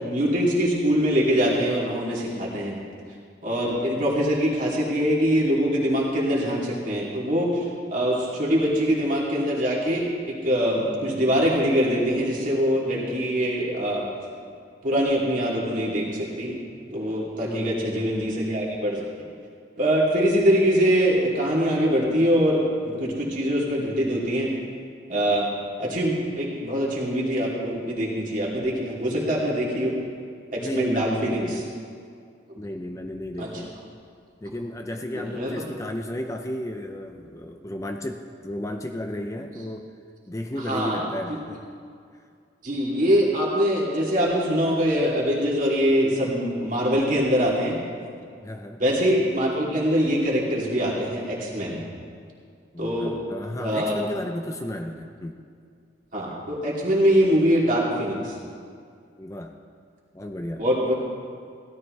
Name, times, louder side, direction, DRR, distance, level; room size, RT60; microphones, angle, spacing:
voice 1, 0.0-2.8 3.4-14.0 14.8-16.6 16.9-19.0 19.8-24.5 25.1-25.5 25.8-29.9 30.5-31.4 33.4-33.5 35.1-35.5 40.7-41.4 42.6-47.8 48.8-51.8 52.8-53.1 53.6-53.9 56.1-58.4 60.6-60.9, equal, 50° right, -5 dB, 2.8 m, -23 dB
voice 2, 17.4-18.2 30.6-31.7 32.6-33.7 34.4-39.9 40.3-41.7 48.4-48.8 52.7-55.4 59.2-59.6 60.1-60.6, left 1 dB, 15° left, 4 dB, 0.5 m, -33 dB
16.5 x 12.5 x 3.2 m, 2.3 s
head